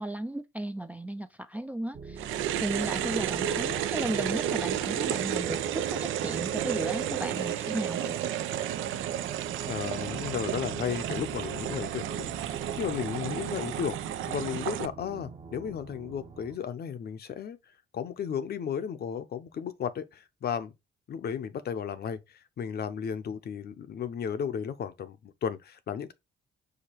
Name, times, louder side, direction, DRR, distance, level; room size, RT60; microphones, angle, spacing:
voice 1, 0.0-2.2 2.6-8.2, right 1 dB, 10° right, 0.3 m, -35 dB
sound 1, 1.9-16.6, right 4 dB, 40° right, 0.9 m, -44 dB
sound 2, 2.2-14.9, right 11 dB, 85° right, 0.4 m, -32 dB
sound 3, 2.7-6.3 7.4-11.4, right 6 dB, 55° right, 1.1 m, -51 dB
voice 2, 9.7-17.6 17.9-20.7 21.1-26.1, left 8 dB, 55° left, 0.6 m, -34 dB
4.9 x 2.3 x 4.4 m
cardioid pair, 90°, 20 cm